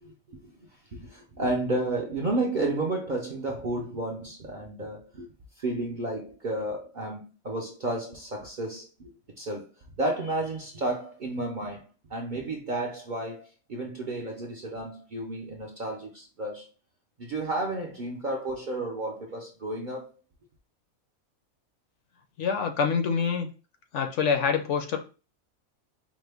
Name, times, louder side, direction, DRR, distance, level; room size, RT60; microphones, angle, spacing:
voice 1, 0.0-5.3 5.6-9.7 10.0-16.7 17.2-20.1, right 2 dB, 55° right, 0.5 m, -32 dB
voice 2, 22.4-23.5 23.9-25.0, left 6 dB, 65° left, 0.9 m, -26 dB
4.9 x 2.1 x 3.3 m
omnidirectional pair, 1.5 m